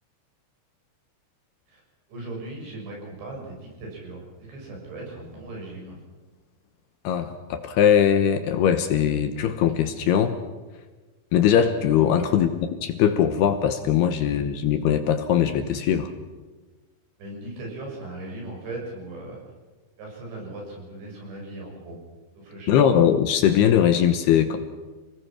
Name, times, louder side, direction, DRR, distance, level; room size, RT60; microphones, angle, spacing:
voice 1, 2.1-6.0 12.2-12.4 17.2-19.4 20.0-22.0 22.3-22.8, right 2 dB, 65° right, -1 dB, 9.1 m, -38 dB
voice 2, 7.0-10.4 11.3-16.1 22.7-24.6, left 9 dB, 75° left, 8 dB, 2.6 m, -21 dB
29.5 x 19.0 x 6.0 m, 1.3 s
omnidirectional pair, 5.6 m